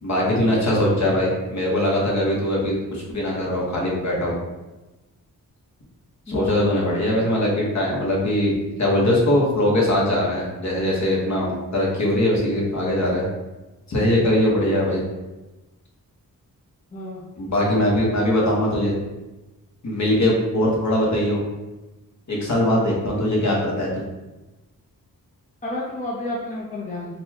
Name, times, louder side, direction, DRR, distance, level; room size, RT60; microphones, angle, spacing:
voice 1, 0.0-4.4 6.3-8.5 8.8-13.3 13.9-15.0 17.4-18.9 19.8-21.4 22.3-23.9, left 1 dB, 50° left, -4 dB, 1.2 m, -21 dB
voice 2, 6.3-6.7 16.9-17.2 25.6-27.2, left 2 dB, 20° left, -4 dB, 0.7 m, -30 dB
4.0 x 2.3 x 2.9 m, 1.1 s
cardioid pair, 65°, 36 cm